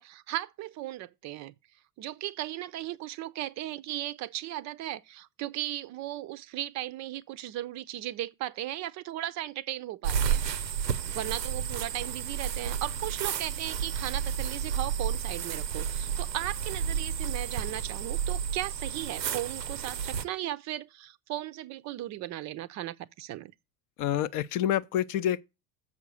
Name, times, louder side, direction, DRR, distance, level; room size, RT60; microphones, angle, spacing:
voice 1, 0.0-1.5 2.0-10.4 11.0-23.5, right 14 dB, 35° right, 0.5 m, -36 dB
sound 1, 10.0-20.2, right 8 dB, 90° right, 0.7 m, -31 dB
voice 2, 24.0-25.4, left 11 dB, 40° left, 0.6 m, -27 dB
7.4 x 5.6 x 6.2 m
hypercardioid pair, 75°, 49 cm